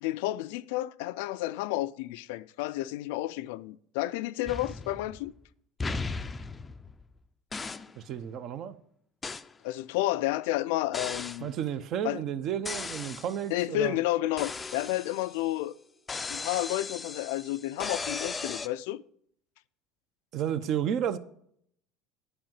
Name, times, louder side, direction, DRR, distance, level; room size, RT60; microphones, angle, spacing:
voice 1, 0.0-5.3 9.6-11.5 12.0-12.2 13.5-15.7 16.3-19.0, left 16 dB, 85° left, 0.4 m, -31 dB
sound 1, 4.4-5.4 5.8-7.1 7.5-8.0 9.2-9.5 10.9-11.5 12.6-13.4 14.4-15.5 16.1-18.7, left 4 dB, 15° left, 0.4 m, -37 dB
voice 2, 8.0-8.7 11.4-14.0 20.3-21.2, right 9 dB, 50° right, 0.7 m, -32 dB
10.5 x 4.8 x 7.5 m
cardioid pair, 140°, 0 cm